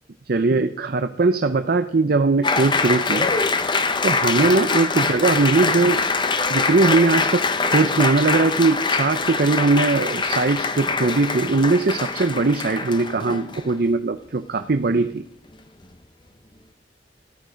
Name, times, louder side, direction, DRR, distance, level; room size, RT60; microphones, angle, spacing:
voice 1, 0.3-3.3 4.0-6.0 6.5-15.2, right 3 dB, 55° right, 8 dB, 0.6 m, -20 dB
Applause, 2.4-13.8, left 4 dB, 25° left, 0.9 m, -23 dB
14.0 x 11.0 x 5.1 m, 0.79 s
head